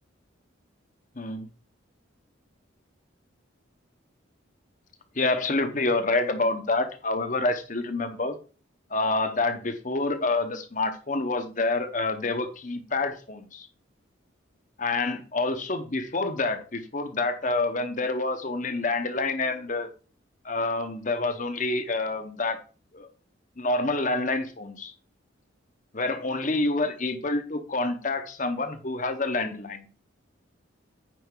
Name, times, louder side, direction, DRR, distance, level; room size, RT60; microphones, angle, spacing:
voice 1, 1.2-1.5 5.2-8.3 8.9-13.7 14.8-19.9 20.4-22.6 22.9-23.1 23.6-24.9 25.9-29.9, left 2 dB, 40° left, 8 dB, 1.0 m, -27 dB
9.2 x 5.2 x 3.8 m, 0.36 s
head